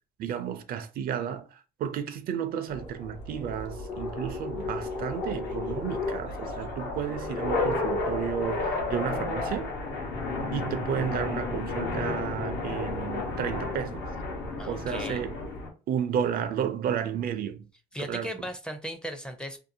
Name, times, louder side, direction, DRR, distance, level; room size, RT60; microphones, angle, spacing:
voice 1, 0.2-9.7 10.5-14.0 14.7-15.4 15.9-17.6 18.1-18.3, right 8 dB, 60° right, 0.4 m, -32 dB
sound 1, 2.7-15.7, left 3 dB, 80° left, 0.9 m, -32 dB
voice 2, 14.6-15.2 17.9-19.6, equal, 5° left, 0.4 m, -37 dB
2.6 x 2.3 x 2.6 m
cardioid pair, 110°, 17 cm